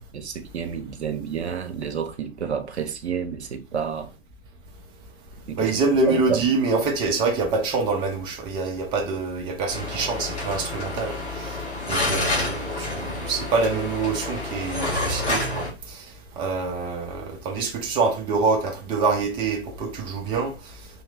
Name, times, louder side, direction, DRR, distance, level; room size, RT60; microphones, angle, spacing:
voice 1, 0.0-4.1 5.5-5.7 6.1-6.5 11.9-12.1, right 7 dB, 80° right, 0.7 m, -30 dB
voice 2, 5.6-11.2 11.8-16.0 16.4-20.5, right 4 dB, 15° right, 0.5 m, -25 dB
sound 1, 9.7-15.7, left 2 dB, 20° left, 1.3 m, -28 dB
2.9 x 2.9 x 2.3 m
figure-of-eight pair, 115°, 33 cm